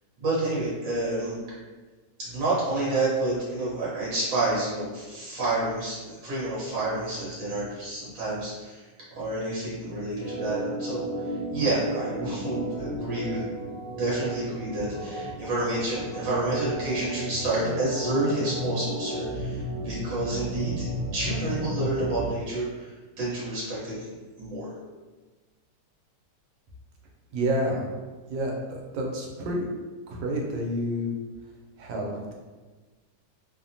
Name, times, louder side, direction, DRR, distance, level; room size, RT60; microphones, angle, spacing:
voice 1, 0.2-1.4 2.2-8.8 9.2-11.1 11.5-20.8 21.1-22.9 23.2-24.1 24.4-24.7, right 2 dB, 55° right, -8 dB, 1.3 m, -29 dB
Organ, 10.2-22.3, right 1 dB, 40° left, 0.8 m, -33 dB
voice 2, 27.3-27.8 28.3-29.7 30.1-31.1 31.8-32.3, right 1 dB, 90° right, -1 dB, 1.3 m, -29 dB
3.1 x 2.1 x 2.6 m, 1.3 s
omnidirectional pair, 1.9 m